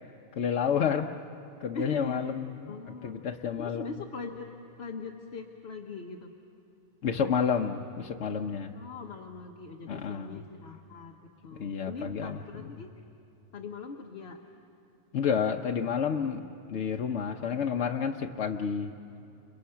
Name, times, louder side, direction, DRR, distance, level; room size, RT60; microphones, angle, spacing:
voice 1, 0.3-1.1 1.6-4.0 7.0-8.7 9.9-10.4 11.5-12.7 15.1-18.9, left 7 dB, 80° left, 2 dB, 1.1 m, -30 dB
voice 2, 1.7-2.3 2.7-3.1 3.6-6.3 8.8-11.2 11.4-13.0 13.5-14.4, left 4 dB, 65° left, 2 dB, 1.3 m, -41 dB
30.0 x 28.5 x 5.7 m, 2.7 s
omnidirectional pair, 1.2 m